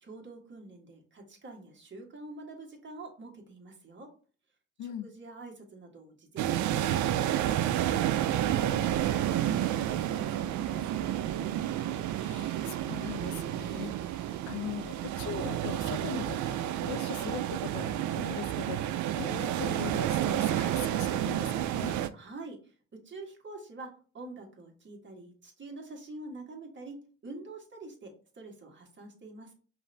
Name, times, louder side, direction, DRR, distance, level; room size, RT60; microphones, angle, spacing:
voice 1, 0.0-4.1 5.0-7.3 7.6-11.2 22.1-27.0 27.2-29.5, right 2 dB, 40° right, 1.6 m, -46 dB
voice 2, 4.8-5.1 12.2-22.0, left 11 dB, 80° left, 0.6 m, -41 dB
sound 1, 6.4-22.1, right 12 dB, 75° right, 0.5 m, -30 dB
5.4 x 2.6 x 3.3 m
cardioid pair, 90°, 30 cm